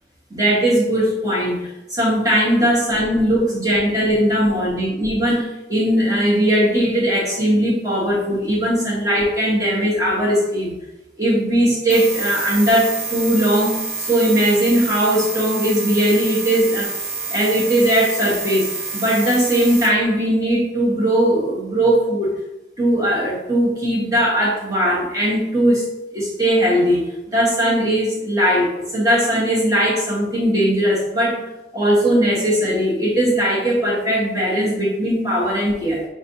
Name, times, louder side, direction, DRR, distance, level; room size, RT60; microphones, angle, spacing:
voice 1, 0.3-10.8 11.2-16.9 17.3-22.3 22.8-25.8 26.1-31.4 31.7-36.0, right 1 dB, 20° right, -5 dB, 1.2 m, -19 dB
sound 1, 11.9-19.9, right 3 dB, 80° right, 1.1 m, -28 dB
4.8 x 3.3 x 2.7 m, 0.93 s
head